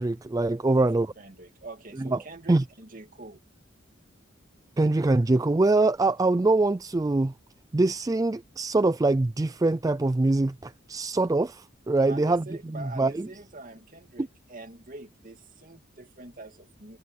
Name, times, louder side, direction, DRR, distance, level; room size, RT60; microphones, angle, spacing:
voice 1, 0.0-1.1 2.0-2.2 2.5-2.6 4.8-7.3 7.7-12.4 12.7-13.3, right 2 dB, 15° right, 0.3 m, -23 dB
voice 2, 0.7-3.4 12.1-17.0, right 2 dB, 45° right, 2.5 m, -45 dB
head